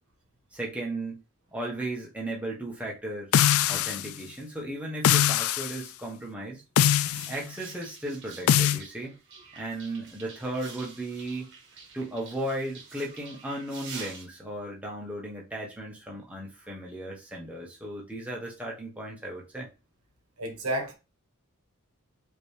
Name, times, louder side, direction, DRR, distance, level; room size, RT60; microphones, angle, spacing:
voice 1, 0.5-1.2 1.5-3.3 3.7-6.6 7.3-9.1 9.5-11.5 11.9-19.7, right 1 dB, 5° right, 1.2 m, -35 dB
sound 1, 3.3-4.1 5.0-5.8 6.8-7.3 8.5-8.8, left 10 dB, 70° left, 0.3 m, -22 dB
sound 2, 6.9-14.3, right 5 dB, 55° right, 1.3 m, -47 dB
voice 2, 20.4-20.9, right 1 dB, 90° right, 1.6 m, -30 dB
5.0 x 3.0 x 3.4 m
head